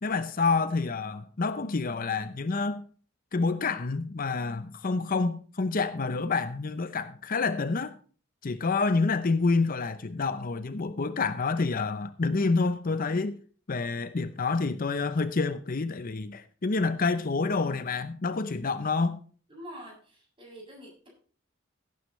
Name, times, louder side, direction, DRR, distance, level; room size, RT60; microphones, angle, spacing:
voice 1, 0.0-2.8 3.3-8.0 8.4-13.4 13.7-19.2, left 4 dB, 45° left, 0.6 m, -28 dB
voice 2, 19.5-19.9 20.4-21.1, equal, 25° right, 7.6 m, -44 dB
17.0 x 9.4 x 3.2 m
head